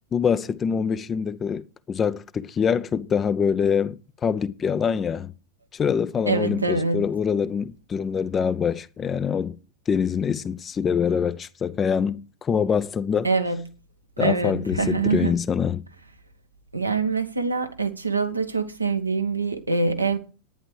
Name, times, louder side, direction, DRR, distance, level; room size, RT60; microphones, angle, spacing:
voice 1, 0.1-5.3 5.7-9.6 9.9-13.3 14.2-15.8, left 7 dB, 20° left, 0.7 m, -25 dB
voice 2, 6.3-7.0 13.2-13.6 14.2-15.3 16.7-20.2, right 4 dB, 85° right, 1.6 m, -24 dB
11.0 x 10.0 x 4.7 m
figure-of-eight pair, 90°, 0 cm